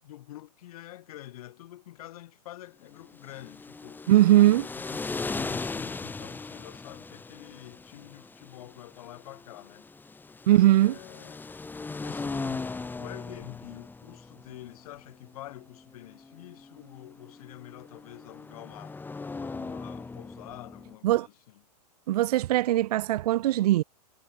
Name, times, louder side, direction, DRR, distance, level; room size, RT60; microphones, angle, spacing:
voice 1, 0.0-4.5 4.7-9.9 10.5-11.5 12.0-12.7 13.0-19.0 19.4-21.6, left 14 dB, 60° left, 7.8 m, -47 dB
sound 1, 3.1-21.0, left 3 dB, 10° left, 5.4 m, -39 dB
voice 2, 4.1-4.6 10.5-11.0 21.0-21.3 22.1-23.8, right 14 dB, 70° right, 0.5 m, -20 dB
hypercardioid pair, 135°, 21 cm